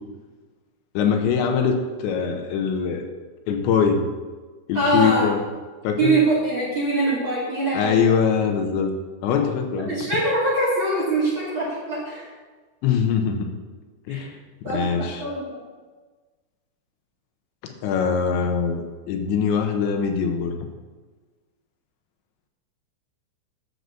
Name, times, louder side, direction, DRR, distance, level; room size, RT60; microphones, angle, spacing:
voice 1, 0.9-3.1 3.5-4.0 4.7-5.4 5.8-6.2 7.7-8.9 9.2-9.9 12.8-13.5 14.1-14.3 14.7-15.3 17.8-20.6, left 6 dB, 80° left, 4 dB, 3.3 m, -22 dB
voice 2, 4.7-5.3 6.0-8.0 9.9-12.3 14.1-14.2 14.6-15.5, right 2 dB, 40° right, -6 dB, 2.0 m, -23 dB
10.5 x 6.8 x 6.8 m, 1.3 s
omnidirectional pair, 5.3 m